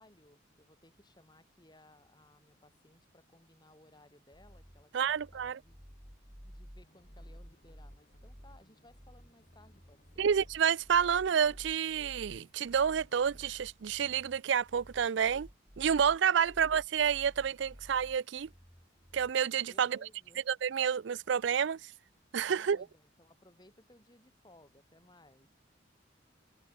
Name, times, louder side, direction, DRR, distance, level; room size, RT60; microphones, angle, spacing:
voice 1, 0.0-6.0 6.4-10.3 16.4-16.6 19.7-20.4 22.5-25.5, left 1 dB, 20° left, 6.0 m, -62 dB
sound 1, 4.3-19.3, equal, ahead, 2.9 m, -53 dB
voice 2, 4.9-5.6 10.2-15.5 15.8-18.5 19.1-20.0 20.5-21.8 22.3-22.8, right 7 dB, 70° right, 0.4 m, -29 dB
sound 2, 6.8-13.5, left 1 dB, 40° left, 5.5 m, -67 dB
head